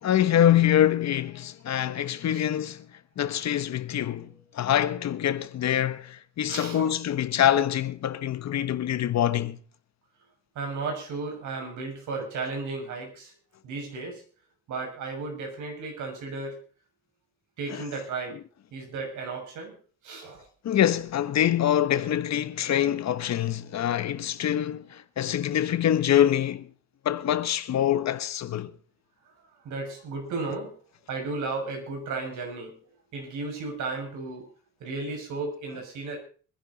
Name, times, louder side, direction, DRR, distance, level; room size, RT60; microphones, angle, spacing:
voice 1, 0.0-2.9 3.2-4.3 4.5-9.6 17.7-17.8 20.6-26.7 27.0-28.7, left 11 dB, 65° left, 1.3 m, -25 dB
voice 2, 6.5-6.9 10.5-13.3 13.6-14.2 14.7-16.6 17.6-18.4 18.7-19.7 20.0-20.4 29.6-30.7 31.1-32.7 33.1-34.4 34.8-36.2, right 3 dB, 75° right, 6.7 m, -34 dB
24.5 x 11.0 x 4.1 m
cardioid pair, 90°, 30 cm